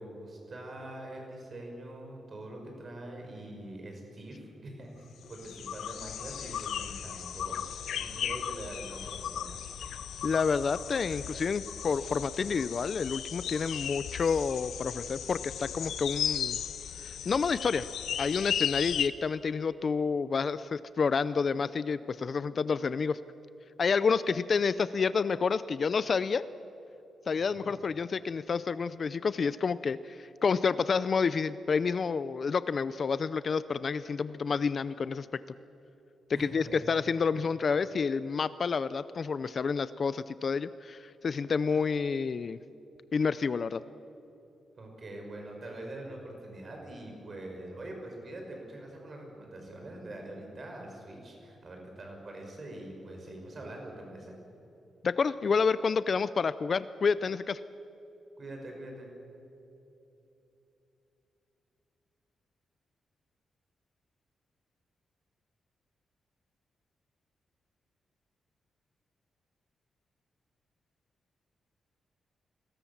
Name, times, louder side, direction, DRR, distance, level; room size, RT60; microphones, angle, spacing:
voice 1, 0.0-9.6 27.4-27.7 36.3-36.8 44.7-54.3 58.4-59.1, right 1 dB, 30° right, 1 dB, 5.8 m, -44 dB
sound 1, 5.2-19.1, left 9 dB, 80° left, 1.0 m, -36 dB
voice 2, 10.2-16.6 17.0-17.8 18.2-23.2 23.8-26.4 27.3-35.4 36.4-42.6 43.1-43.8 55.0-57.6, left 5 dB, 35° left, 15 dB, 0.5 m, -29 dB
30.0 x 21.0 x 7.3 m, 3.0 s
wide cardioid pair, 170°, 0 cm